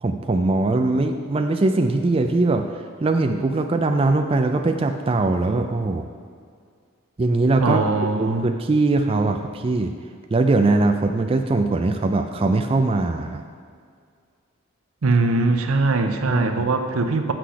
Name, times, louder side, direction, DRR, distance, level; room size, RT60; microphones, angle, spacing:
voice 1, 0.0-2.7 3.0-6.1 7.2-7.8 8.2-9.9 10.3-13.4 16.3-16.7, right 2 dB, 25° right, 5 dB, 0.3 m, -21 dB
voice 2, 7.6-8.5 15.0-17.3, right 3 dB, 90° right, 7 dB, 0.7 m, -21 dB
6.4 x 6.0 x 5.7 m, 2.1 s
head